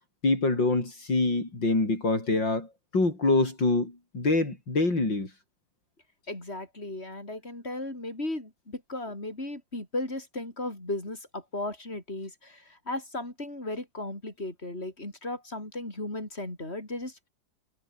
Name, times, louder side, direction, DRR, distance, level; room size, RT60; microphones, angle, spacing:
voice 1, 0.2-5.3, left 2 dB, 75° left, 7.0 m, -25 dB
voice 2, 6.3-17.3, left 2 dB, 30° left, 7.6 m, -36 dB
omnidirectional pair, 2.0 m